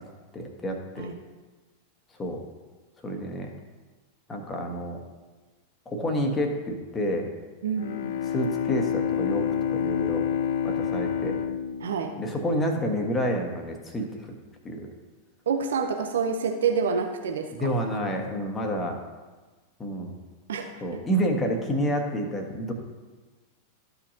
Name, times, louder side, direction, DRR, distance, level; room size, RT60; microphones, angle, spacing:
voice 1, 0.3-1.1 2.2-2.4 3.0-3.5 4.3-5.0 5.8-7.3 8.2-10.2 10.6-11.4 12.2-14.3 14.6-14.9 17.5-19.0 19.8-20.1 20.8-22.7, equal, 20° left, 3 dB, 1.4 m, -29 dB
voice 2, 7.6-8.1 11.8-12.2 15.5-17.7 20.5-21.0, right 6 dB, 65° right, 4 dB, 0.6 m, -28 dB
Bowed string instrument, 7.8-12.9, left 8 dB, 55° left, 0.5 m, -28 dB
13.5 x 5.6 x 2.8 m, 1.3 s
figure-of-eight pair, 90°, 0 cm